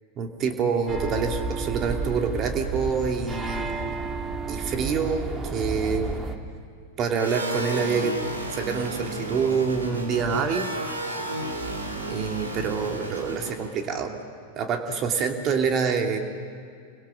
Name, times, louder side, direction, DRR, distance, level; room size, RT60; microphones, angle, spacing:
voice 1, 0.2-4.0 4.5-6.2 7.0-8.2 8.5-10.7 12.1-14.2 14.6-16.2, right 5 dB, 30° right, 4 dB, 2.5 m, -26 dB
sound 1, 0.9-6.4, right 3 dB, 15° right, 2.1 m, -31 dB
sound 2, 7.1-13.7, right 2 dB, 80° right, 4.0 m, -32 dB
29.0 x 24.0 x 6.3 m, 2.2 s
figure-of-eight pair, 90°, 0 cm